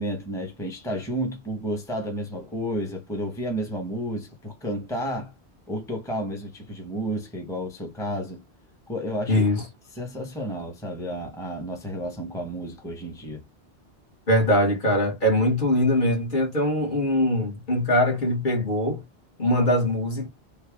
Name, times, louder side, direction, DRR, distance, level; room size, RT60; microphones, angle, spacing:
voice 1, 0.0-5.3 5.7-8.4 8.9-9.4 9.9-13.4, equal, 5° left, 0.9 m, -31 dB
voice 2, 9.3-9.6 14.3-19.0 19.4-20.3, left 1 dB, 50° left, 1.5 m, -22 dB
3.2 x 2.3 x 3.4 m
omnidirectional pair, 1.1 m